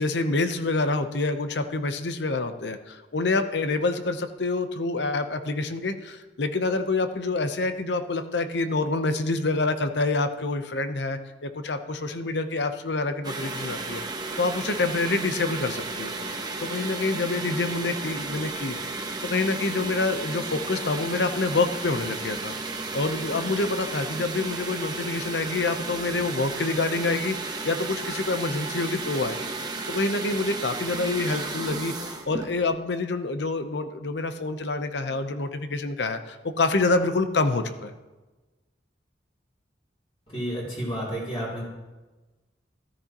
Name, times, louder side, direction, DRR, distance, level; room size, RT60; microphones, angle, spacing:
voice 1, 0.0-14.0 14.4-16.1 16.6-29.5 29.9-37.9, left 3 dB, 70° left, 9 dB, 0.8 m, -27 dB
sound 1, 13.2-32.6, right 3 dB, 25° right, 1.0 m, -33 dB
voice 2, 40.3-41.7, equal, 30° left, -6 dB, 3.1 m, -31 dB
14.0 x 13.0 x 3.0 m, 1.2 s
head